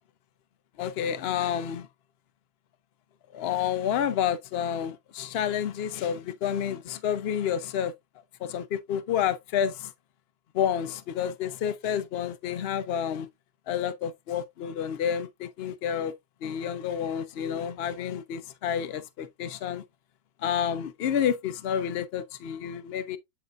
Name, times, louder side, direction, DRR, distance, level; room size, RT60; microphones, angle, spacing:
voice 1, 0.8-1.9 3.3-7.9 8.4-9.9 10.5-13.3 13.7-16.1 16.4-19.8 20.4-23.2, left 9 dB, 70° left, 0.5 m, -29 dB
8.1 x 4.9 x 2.4 m
omnidirectional pair, 1.9 m